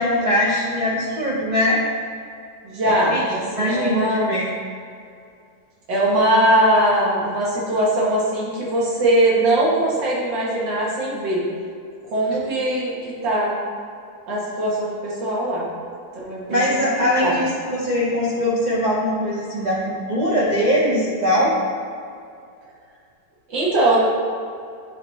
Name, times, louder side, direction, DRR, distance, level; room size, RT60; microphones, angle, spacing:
voice 1, 0.0-1.8 2.8-3.2 3.5-4.5 16.5-21.5, left 1 dB, 55° right, -5 dB, 0.4 m, -21 dB
voice 2, 2.6-4.3 5.9-11.4 12.1-12.9 13.2-13.5 14.3-15.7 16.2-17.4 23.5-24.0, right 1 dB, 85° right, -5 dB, 2.1 m, -21 dB
8.3 x 4.1 x 3.2 m, 2.4 s
omnidirectional pair, 1.9 m